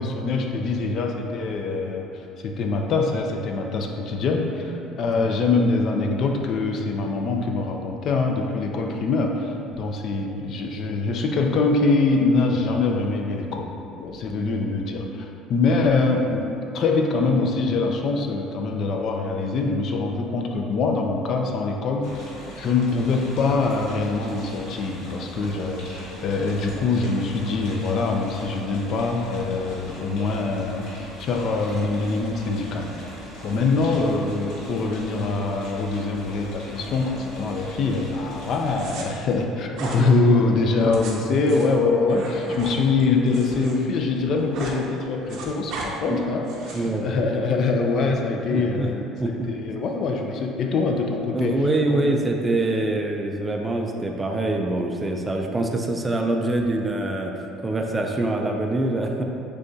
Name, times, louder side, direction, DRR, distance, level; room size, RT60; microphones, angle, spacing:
voice 1, 0.0-16.5 16.7-22.2 22.6-33.0 33.4-49.0 49.5-51.6 51.9-52.0, left 3 dB, 50° left, 2 dB, 0.4 m, -24 dB
sound 1, 22.0-39.0, equal, 80° left, 1.2 m, -40 dB
sound 2, 38.7-39.0 39.7-40.0 40.8-43.7 44.0-44.8 45.1-45.9 46.4-46.9, right 3 dB, 65° right, 0.6 m, -36 dB
voice 2, 46.7-47.1 48.5-48.9 49.2-49.5 51.3-59.2, right 2 dB, 20° right, 2 dB, 0.3 m, -25 dB
6.4 x 2.3 x 2.6 m, 2.7 s
cardioid pair, 115°, 0 cm